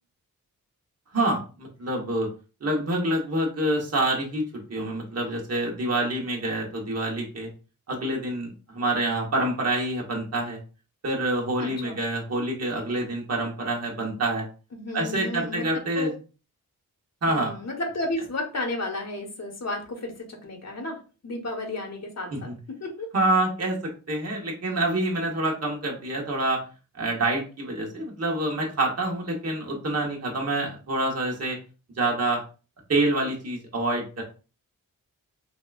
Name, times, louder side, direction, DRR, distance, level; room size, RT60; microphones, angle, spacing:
voice 1, 1.1-2.3 2.6-4.4 4.7-7.5 7.9-10.6 11.0-14.5 14.9-16.1 17.2-17.5 22.3-22.6 23.1-23.8 24.1-26.6 26.9-31.6 32.0-32.4 32.9-34.2, right 1 dB, 45° right, -2 dB, 1.2 m, -27 dB
voice 2, 11.6-12.0 14.7-15.6 15.9-16.1 17.3-22.5 22.8-23.1, left 2 dB, 50° left, 1 dB, 1.2 m, -33 dB
3.3 x 2.7 x 2.4 m, 0.34 s
cardioid pair, 70°, 35 cm